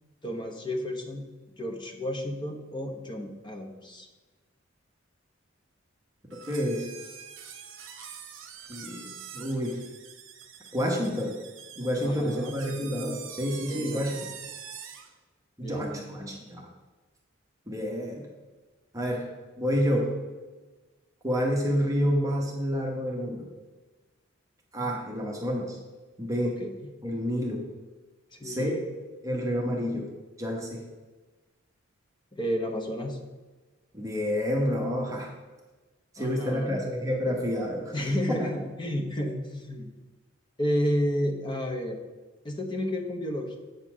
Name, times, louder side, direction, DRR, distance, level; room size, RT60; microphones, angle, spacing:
voice 1, 0.2-1.3 1.6-4.1 12.0-12.5 13.7-14.0 15.6-16.3 26.6-26.9 28.3-28.8 32.3-33.2 36.2-36.8 37.9-39.9 40.6-42.0 42.4-43.6, equal, 20° left, 3 dB, 0.8 m, -31 dB
sound 1, 6.3-15.1, right 7 dB, 70° right, 0.8 m, -44 dB
voice 2, 6.5-6.9 8.7-9.8 10.7-11.3 11.8-14.2 15.6-16.7 17.7-18.3 18.9-19.3 19.6-20.1 21.2-23.5 24.7-25.8 26.2-26.6 27.0-27.6 28.4-28.8 29.2-30.1 30.4-30.8 33.9-35.3 36.1-37.9 38.3-38.5, equal, 15° right, -1 dB, 1.0 m, -29 dB
8.0 x 4.1 x 6.1 m, 1.2 s
head